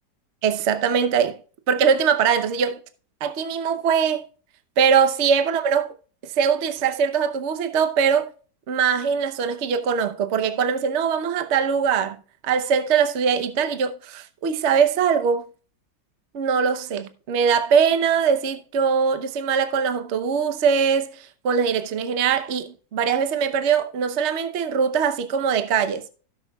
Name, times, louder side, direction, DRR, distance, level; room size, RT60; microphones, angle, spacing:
voice 1, 0.4-1.4 1.7-2.8 3.2-4.2 4.8-5.9 6.4-8.3 8.7-12.2 12.4-15.4 16.3-26.0, right 6 dB, 50° right, 0.9 m, -22 dB
17.0 x 6.4 x 2.3 m
omnidirectional pair, 2.0 m